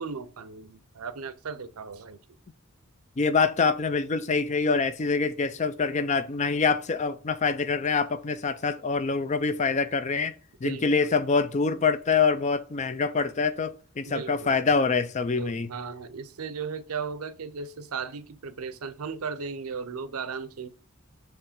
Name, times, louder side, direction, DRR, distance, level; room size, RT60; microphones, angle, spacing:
voice 1, 0.0-2.2 10.6-11.1 14.0-14.6 15.4-20.7, right 5 dB, 85° right, 0.6 m, -36 dB
voice 2, 3.2-10.3 10.6-15.7, left 4 dB, 30° left, 0.4 m, -25 dB
7.2 x 3.1 x 5.1 m
head